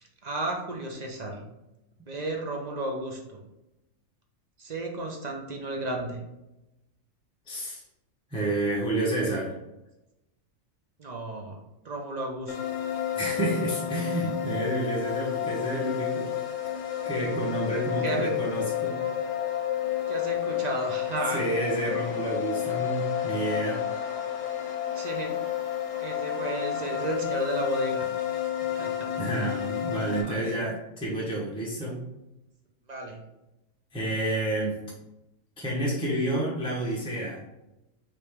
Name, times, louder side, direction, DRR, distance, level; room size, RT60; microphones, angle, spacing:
voice 1, 0.2-1.4 2.1-3.4 4.6-6.2 11.0-11.6 11.8-12.6 18.0-18.3 20.1-21.4 24.9-25.4 26.0-28.3 28.6-29.1 30.2-30.6 32.9-33.2, right 2 dB, 45° right, 1 dB, 0.5 m, -33 dB
voice 2, 7.5-7.8 8.3-9.5 13.1-16.3 17.0-19.0 21.3-23.8 29.2-32.0 33.9-34.8 35.6-37.4, right 1 dB, 5° left, -5 dB, 0.7 m, -29 dB
sound 1, 12.5-30.2, left 10 dB, 60° left, 0.9 m, -31 dB
4.8 x 3.0 x 3.5 m, 0.95 s
omnidirectional pair, 1.4 m